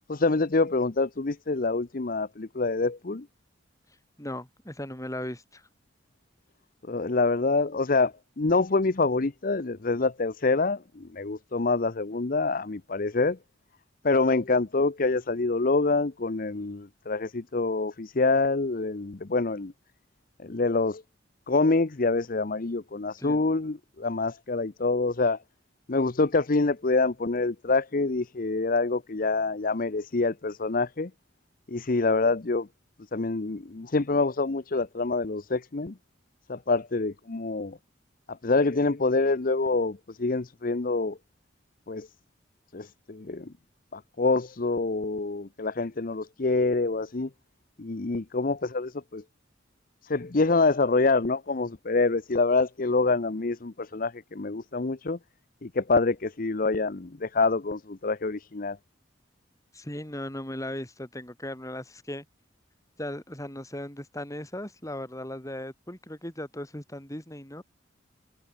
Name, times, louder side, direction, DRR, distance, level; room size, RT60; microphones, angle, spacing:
voice 1, 0.1-3.3 6.9-13.4 14.0-19.7 20.4-21.0 21.5-25.4 25.9-31.1 31.7-32.7 33.1-35.9 36.5-37.8 38.3-41.2 41.9-42.1 42.7-43.5 43.9-47.3 47.8-49.2 50.0-55.2 55.6-58.8, left 3 dB, 50° left, 0.8 m, -26 dB
voice 2, 4.2-5.6 23.2-23.4 59.7-62.2 63.0-67.6, left 1 dB, 15° left, 4.4 m, -37 dB
head